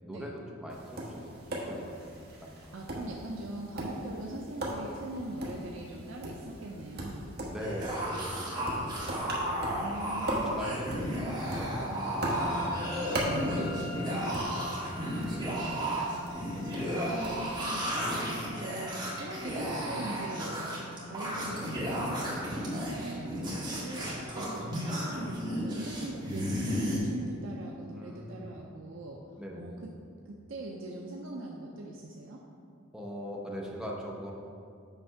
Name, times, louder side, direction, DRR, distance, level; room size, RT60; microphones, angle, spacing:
voice 1, 0.0-2.2 2.4-2.7 7.5-9.7 10.3-16.0 16.3-17.2 27.9-28.5 29.4-29.8 32.9-34.3, equal, 5° right, -3 dB, 0.7 m, -42 dB
Tap, 0.7-17.4, right 1 dB, 50° right, 1.2 m, -39 dB
voice 2, 2.7-7.3 9.7-10.6 13.4-13.6 17.1-22.3 22.8-29.2 29.5-29.9 30.3-32.4, right 1 dB, 65° right, -1 dB, 0.6 m, -42 dB
sound 1, 7.6-27.0, equal, 20° right, 1.7 m, -34 dB
sound 2, 12.2-22.9, left 1 dB, 60° left, 0.9 m, -45 dB
8.1 x 3.4 x 5.7 m, 2.3 s
head